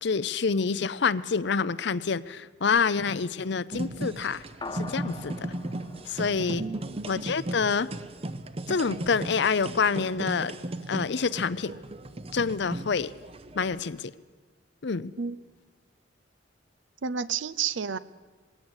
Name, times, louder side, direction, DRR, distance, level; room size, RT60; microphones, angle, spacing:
voice 1, 0.0-4.4 4.7-5.5 6.1-6.7 7.1-7.9 8.7-10.5 10.9-11.8 12.3-13.1 13.5-14.1 14.8-15.1, left 5 dB, 60° left, 16 dB, 0.6 m, -27 dB
sound 1, 3.7-13.8, right 1 dB, 30° right, 0.7 m, -36 dB
sound 2, 4.6-7.3, left 3 dB, 25° left, 1.1 m, -43 dB
voice 2, 6.6-7.0 15.2-15.4 17.0-18.0, right 6 dB, 70° right, 16 dB, 0.6 m, -31 dB
21.0 x 17.0 x 8.1 m, 1.4 s
head